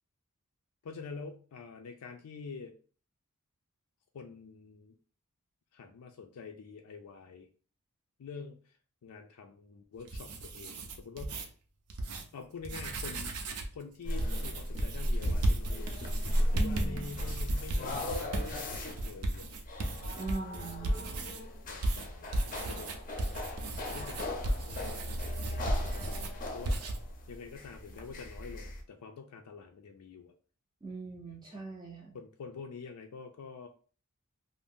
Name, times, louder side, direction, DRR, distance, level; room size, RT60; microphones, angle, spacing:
voice 1, 0.8-2.7 4.1-5.0 5.7-7.5 8.2-8.8 9.0-11.5 12.3-13.4 13.7-16.0 16.4-19.6 21.7-22.9 23.9-26.8 27.3-30.3 32.1-33.7, left 5 dB, 90° left, 4 dB, 0.4 m, -47 dB
sound 1, 9.9-11.5 11.9-12.2 12.6-13.8 14.2-21.4 21.8-26.3 26.7-27.0, right 1 dB, 80° right, 0.5 m, -35 dB
sound 2, 14.0-28.8, equal, 40° left, 0.5 m, -36 dB
voice 2, 16.5-17.2 20.1-21.0 30.8-32.2, right 3 dB, 20° right, -1 dB, 0.4 m, -40 dB
2.6 x 2.0 x 3.4 m, 0.40 s
head